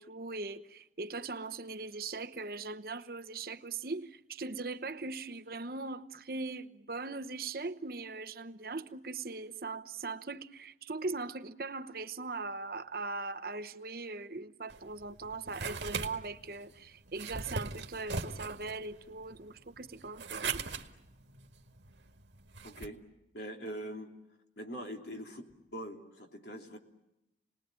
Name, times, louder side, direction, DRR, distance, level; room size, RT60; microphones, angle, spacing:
voice 1, 0.0-20.6, right 3 dB, 50° right, 0.9 m, -40 dB
sound 1, 14.7-22.9, right 4 dB, 75° right, 2.0 m, -40 dB
voice 2, 22.6-23.0 23.3-24.1 24.6-26.8, equal, 65° left, 3.1 m, -43 dB
30.0 x 20.0 x 9.0 m
head